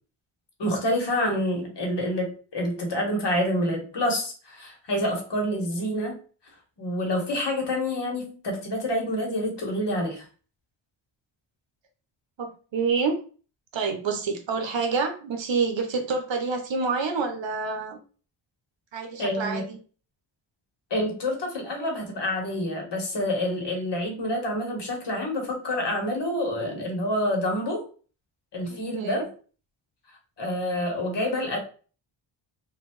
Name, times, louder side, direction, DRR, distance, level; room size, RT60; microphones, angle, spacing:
voice 1, 0.6-6.2 6.8-10.3 19.2-19.7 20.9-27.8 28.5-29.3 30.4-31.6, left 1 dB, 55° left, 1 dB, 1.4 m, -27 dB
voice 2, 12.4-13.2 13.7-18.0 18.9-19.8 28.7-29.2, right 4 dB, 60° right, 5 dB, 0.9 m, -28 dB
3.2 x 2.7 x 3.0 m, 0.39 s
cardioid pair, 80°, 49 cm